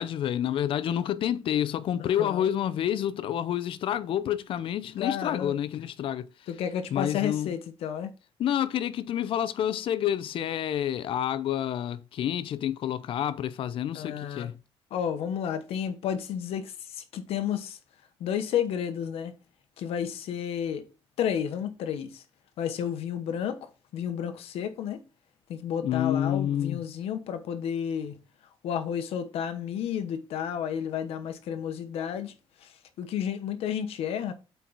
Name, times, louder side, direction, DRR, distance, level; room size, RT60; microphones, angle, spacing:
voice 1, 0.0-6.3 6.9-7.5 8.4-14.5 25.8-26.8, left 10 dB, 65° left, 0.6 m, -28 dB
voice 2, 2.0-2.5 5.0-5.5 6.5-8.1 13.9-14.5 14.9-17.8 18.2-19.3 19.8-20.8 21.2-22.2 22.6-25.0 25.5-28.1 28.6-32.3 32.6-32.7 33.0-34.3, left 8 dB, 85° left, 1.1 m, -31 dB
8.3 x 4.6 x 4.0 m
cardioid pair, 145°, 10 cm